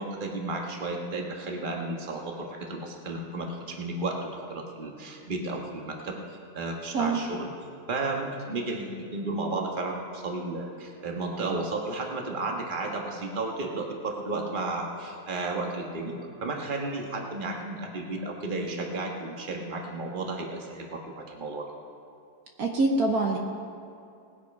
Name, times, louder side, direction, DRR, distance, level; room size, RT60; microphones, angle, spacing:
voice 1, 0.0-7.5 7.9-21.7, right 2 dB, 30° right, 1 dB, 1.4 m, -33 dB
voice 2, 22.6-23.4, right 3 dB, 65° right, 1 dB, 1.4 m, -24 dB
19.0 x 8.2 x 5.2 m, 2.5 s
omnidirectional pair, 1.8 m